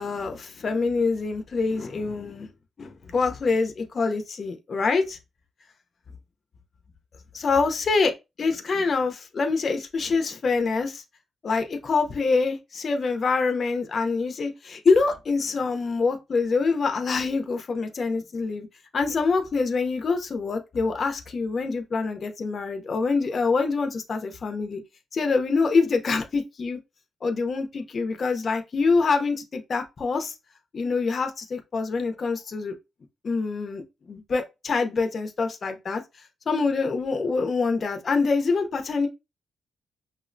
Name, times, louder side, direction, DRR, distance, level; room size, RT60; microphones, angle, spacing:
voice 1, 0.0-2.5 2.8-5.2 7.3-8.1 8.4-11.0 11.4-18.7 18.9-24.8 25.1-26.8 27.2-30.3 30.7-32.7 33.2-36.0 36.5-39.1, left 4 dB, 50° left, 0.6 m, -25 dB
5.4 x 2.1 x 2.5 m
cardioid pair, 85°, 0 cm